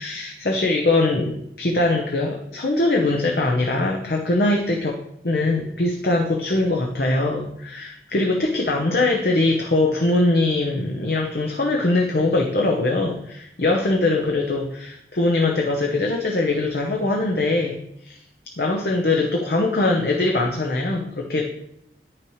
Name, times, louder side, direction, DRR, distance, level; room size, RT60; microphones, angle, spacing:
voice 1, 0.0-18.2 18.6-21.4, left 2 dB, 60° left, 0 dB, 0.8 m, -22 dB
10.0 x 5.9 x 3.1 m, 0.77 s
head